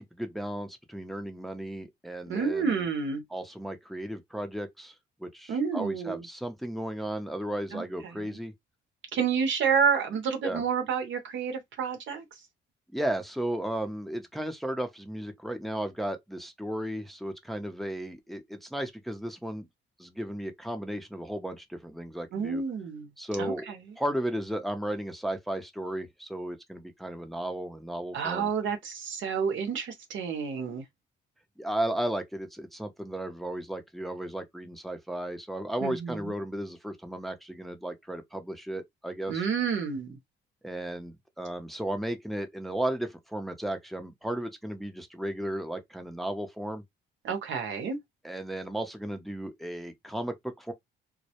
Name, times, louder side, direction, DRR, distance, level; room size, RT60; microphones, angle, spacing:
voice 1, 0.0-2.8 3.3-4.9 5.2-8.5 10.4-10.6 12.9-19.7 20.0-22.6 23.2-23.6 24.0-28.5 31.6-39.5 40.6-46.8 48.2-50.7, right 1 dB, ahead, 0.5 m, -34 dB
voice 2, 2.3-3.2 5.5-6.2 7.7-8.4 9.1-12.2 22.3-23.1 23.4-23.9 28.1-30.8 35.8-36.3 39.3-40.2 47.2-48.0, right 6 dB, 70° right, 0.8 m, -29 dB
2.1 x 2.1 x 2.8 m
cardioid pair, 90°, 20 cm